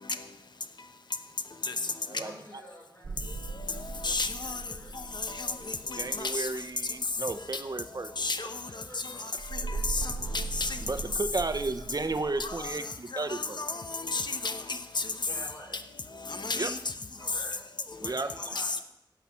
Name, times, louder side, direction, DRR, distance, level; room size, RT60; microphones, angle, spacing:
voice 1, 2.1-3.4 4.0-5.0 8.7-10.4 11.8-12.1 12.5-13.2 13.5-13.7 15.3-15.8 17.2-18.8, equal, 30° left, -3 dB, 5.4 m, -50 dB
sound 1, 3.0-6.6 9.4-12.7, right 3 dB, 80° right, 0.6 m, -38 dB
voice 2, 4.0-4.6 8.2-8.5 10.3-10.7 12.4-12.5 13.3-13.8 14.1-14.5 15.0-15.1 16.4-16.7, left 3 dB, 70° left, 8 dB, 1.0 m, -31 dB
voice 3, 5.9-8.1 10.8-13.6 16.5-16.7 18.0-18.3, right 3 dB, 55° right, 9 dB, 0.8 m, -33 dB
17.0 x 5.8 x 5.8 m, 0.84 s
wide cardioid pair, 65°, 8 cm